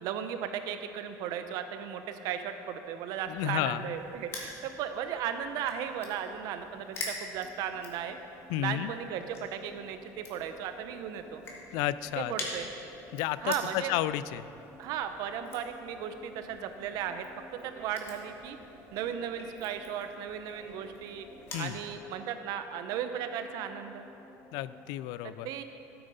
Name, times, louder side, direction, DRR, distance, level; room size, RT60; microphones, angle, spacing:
voice 1, 0.0-8.2 8.6-11.4 12.2-12.7 13.4-14.0 14.8-17.3 17.5-18.6 18.9-21.3 21.6-24.0 25.2-25.6, right 8 dB, 65° right, 8 dB, 0.8 m, -36 dB
Crushing, 3.2-21.7, left 3 dB, 40° left, 1.9 m, -47 dB
voice 2, 3.3-3.9 8.5-8.9 11.7-12.3 13.1-14.5 21.5-21.8 24.5-25.5, left 13 dB, 75° left, 16 dB, 0.4 m, -32 dB
sound 1, 7.3-24.9, equal, 15° right, 1.9 m, -55 dB
12.0 x 8.9 x 5.4 m, 2.8 s
cardioid pair, 160°, 7 cm